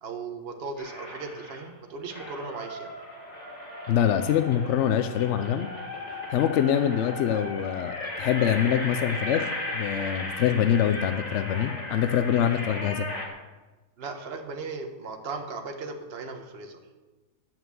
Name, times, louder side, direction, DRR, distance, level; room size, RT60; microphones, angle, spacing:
voice 1, 0.0-3.0 14.0-16.8, right 4 dB, 40° right, 5 dB, 1.2 m, -37 dB
sound 1, 0.8-1.7 2.1-13.3, left 1 dB, 25° left, 1.9 m, -36 dB
voice 2, 3.9-5.7 6.3-13.1, left 9 dB, 70° left, 9 dB, 0.7 m, -25 dB
9.1 x 5.9 x 7.6 m, 1.2 s
omnidirectional pair, 1.7 m